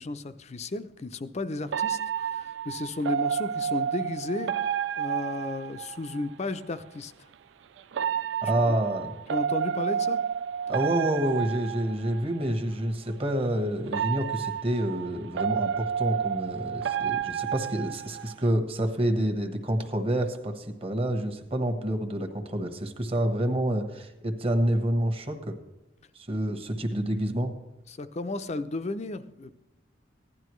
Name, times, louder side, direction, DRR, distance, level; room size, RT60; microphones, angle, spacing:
voice 1, 0.0-4.5 5.0-7.1 9.3-10.2 27.9-29.5, left 2 dB, 35° left, 11 dB, 0.5 m, -34 dB
sound 1, 1.7-6.3 7.9-12.5 13.9-18.5, right 8 dB, 70° right, 0.3 m, -30 dB
voice 2, 8.4-9.1 10.7-25.6 26.1-27.5, right 1 dB, 30° right, 6 dB, 1.2 m, -28 dB
16.0 x 11.0 x 3.1 m, 1.0 s
head